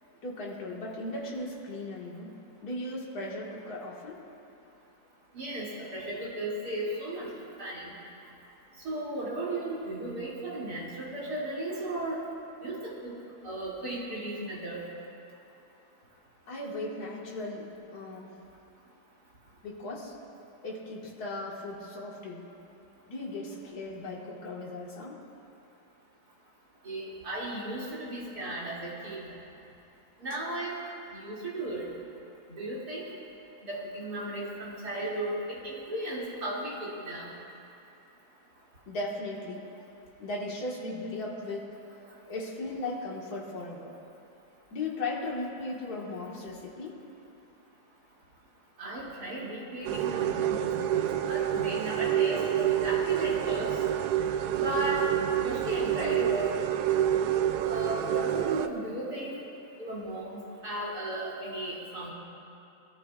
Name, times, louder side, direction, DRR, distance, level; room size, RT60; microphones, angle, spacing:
voice 1, 0.2-2.3 2.6-4.2 16.5-18.4 19.6-20.1 20.6-22.5 23.1-25.2 38.9-39.6 40.2-41.7 42.3-43.9 44.7-47.0, left 2 dB, 50° left, -3 dB, 2.3 m, -37 dB
voice 2, 5.3-7.3 7.6-7.9 8.8-12.2 12.6-13.1 13.4-14.8 26.8-29.3 30.2-30.8 31.1-31.9 32.6-33.0 33.7-37.3 48.8-53.7 54.5-55.1 55.4-56.5 57.6-59.4 59.8-62.1, right 1 dB, 50° right, -7 dB, 3.4 m, -35 dB
sound 1, 49.8-58.7, right 11 dB, 75° right, 0.9 m, -28 dB
23.0 x 13.5 x 2.5 m, 2.7 s
omnidirectional pair, 2.2 m